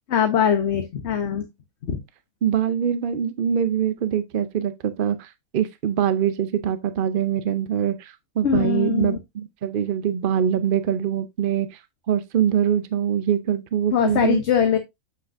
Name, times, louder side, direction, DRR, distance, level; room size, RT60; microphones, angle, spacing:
voice 1, 0.1-1.5 1.8-2.0 8.4-9.2 13.9-14.8, left 8 dB, 50° left, 1.2 m, -21 dB
voice 2, 2.4-11.8 12.1-14.4, right 9 dB, 55° right, 0.6 m, -23 dB
7.6 x 6.3 x 2.6 m
omnidirectional pair, 1.5 m